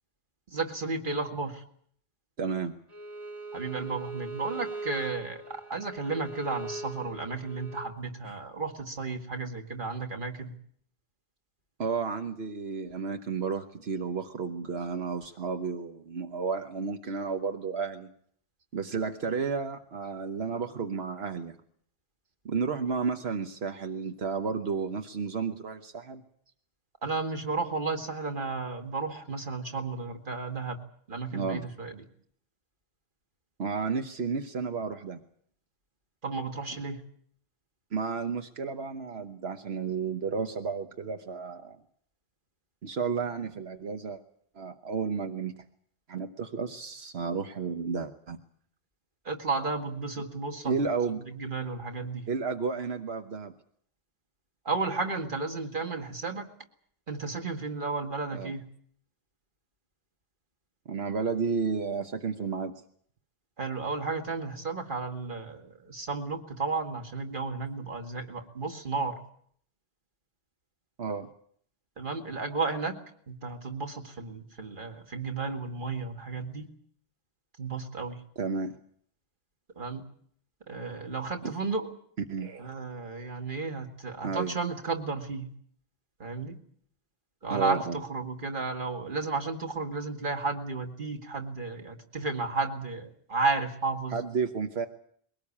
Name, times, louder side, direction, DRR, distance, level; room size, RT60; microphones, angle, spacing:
voice 1, 0.5-1.6 3.5-5.4 5.7-10.5 27.0-30.8 31.1-32.0 36.2-37.0 49.2-50.8 51.1-52.3 54.7-56.5 57.1-58.6 63.6-69.2 72.0-72.9 73.3-76.7 77.6-78.2 79.8-80.0 80.7-81.9 82.6-85.5 86.2-86.6 87.4-94.2, right 3 dB, 55° right, 4 dB, 2.2 m, -33 dB
voice 2, 2.4-2.7 8.2-8.3 11.8-18.1 18.7-21.6 22.4-26.2 31.3-31.7 33.6-35.2 37.9-41.8 42.8-44.2 44.5-45.5 46.1-48.4 50.6-51.2 52.3-53.5 58.3-58.6 60.9-62.7 71.0-71.3 78.4-78.7 81.4-81.5 82.3-82.7 84.2-84.5 87.5-88.0 94.1-94.9, right 5 dB, 85° right, 6 dB, 1.4 m, -32 dB
Bowed string instrument, 2.9-7.9, right 3 dB, 25° right, 3.0 m, -40 dB
22.0 x 18.5 x 8.6 m, 0.63 s
omnidirectional pair, 1.0 m